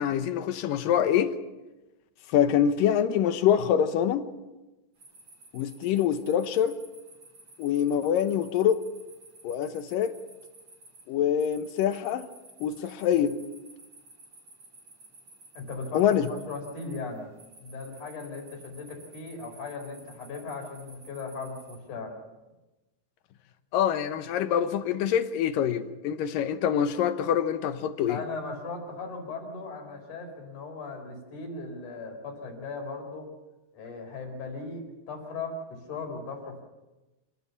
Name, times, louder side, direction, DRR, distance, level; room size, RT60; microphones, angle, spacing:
voice 1, 0.0-1.3 2.3-4.3 5.5-6.8 7.6-8.8 9.4-10.1 11.1-12.3 12.6-13.4 15.9-16.3 23.7-28.2, left 9 dB, 70° left, 2.4 m, -25 dB
sound 1, 5.0-21.8, right 2 dB, 35° right, 5.3 m, -53 dB
voice 2, 15.5-17.3 17.6-22.1 28.1-33.3 33.7-36.6, left 3 dB, 50° left, 5.7 m, -38 dB
27.0 x 17.0 x 7.2 m
omnidirectional pair, 4.6 m